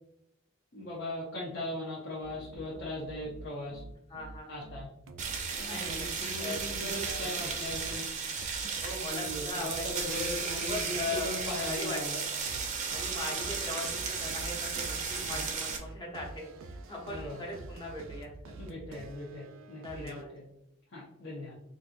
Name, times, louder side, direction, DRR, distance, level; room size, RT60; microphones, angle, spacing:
voice 1, 0.7-3.8 4.5-4.9 5.6-8.0 9.1-12.1 15.3-15.4 17.1-17.4 18.6-20.4 20.9-21.5, left 1 dB, 60° left, -6 dB, 0.8 m, -39 dB
sound 1, 2.2-8.0 8.3-11.7 12.4-20.2, right 2 dB, 90° right, 0.4 m, -47 dB
voice 2, 4.1-4.7 5.7-7.4 8.8-12.3 12.9-18.3 19.8-20.3, left 2 dB, 25° left, -2 dB, 0.9 m, -40 dB
sound 2, 5.2-15.8, right 5 dB, 40° right, 0.5 m, -35 dB
4.2 x 2.6 x 2.5 m, 0.83 s
head